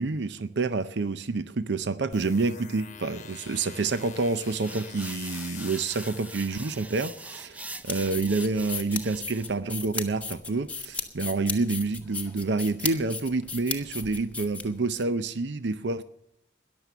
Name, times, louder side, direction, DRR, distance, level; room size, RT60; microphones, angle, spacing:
voice 1, 0.0-16.0, right 3 dB, 75° right, 0.6 m, -28 dB
sound 1, 2.1-8.1, left 8 dB, 40° left, 1.1 m, -46 dB
sound 2, 4.4-9.6, right 2 dB, 10° right, 0.5 m, -43 dB
sound 3, 7.6-15.0, left 4 dB, 10° left, 1.2 m, -35 dB
14.0 x 11.0 x 6.8 m
head